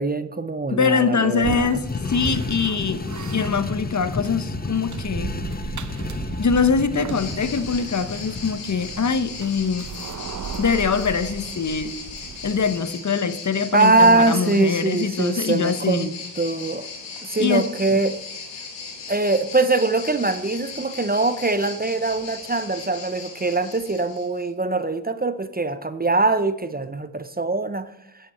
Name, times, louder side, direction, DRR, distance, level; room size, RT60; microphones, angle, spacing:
voice 1, 0.0-1.8 13.7-16.9 17.2-18.2 19.1-27.9, right 3 dB, 20° right, 12 dB, 0.8 m, -22 dB
voice 2, 0.7-3.1 3.3-5.3 6.4-9.9 10.6-11.9 12.4-16.1 17.4-18.0, left 5 dB, 40° left, 12 dB, 1.0 m, -23 dB
sound 1, 1.4-12.8, right 6 dB, 40° right, 1.0 m, -36 dB
sound 2, 1.7-9.1, left 4 dB, 20° left, 0.7 m, -32 dB
sound 3, 7.1-24.5, left 4 dB, 80° left, 2.6 m, -38 dB
9.8 x 8.8 x 4.4 m, 0.81 s
supercardioid pair, 45°, 43 cm